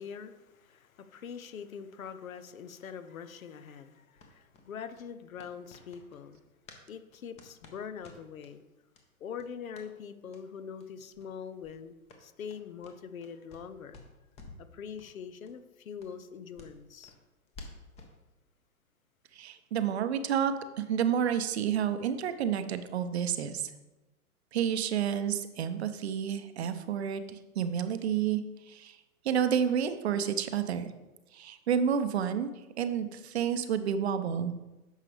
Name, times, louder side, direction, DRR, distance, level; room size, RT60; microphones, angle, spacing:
voice 1, 0.0-6.4 6.9-8.6 9.2-14.0 14.6-17.1, left 7 dB, 65° left, 0.8 m, -43 dB
sound 1, 4.2-6.9 7.1-8.5 8.9-9.1 9.3-9.9 10.3-10.4 10.8-10.9 11.1-11.3 11.6-13.7 13.9-14.7 15.0-15.1 15.4-15.5 16.0-18.2, left 2 dB, 15° left, 0.8 m, -53 dB
voice 2, 19.3-23.7 24.5-28.4 28.7-29.0 29.2-30.9 31.3-32.5 32.8-34.5, right 8 dB, 45° right, 0.7 m, -30 dB
10.0 x 6.5 x 3.3 m
figure-of-eight pair, 125°, 45 cm